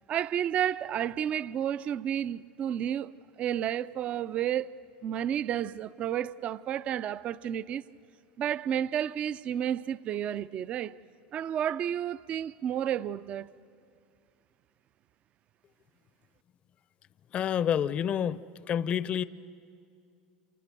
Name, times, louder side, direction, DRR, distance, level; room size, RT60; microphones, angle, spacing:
voice 1, 0.1-3.1 3.4-4.7 5.0-7.8 8.4-11.0 11.3-13.5, right 10 dB, 45° right, 0.6 m, -31 dB
voice 2, 17.3-18.4 18.7-19.2, left 9 dB, 40° left, 0.7 m, -28 dB
28.5 x 27.5 x 6.8 m
supercardioid pair, 105°, 3 cm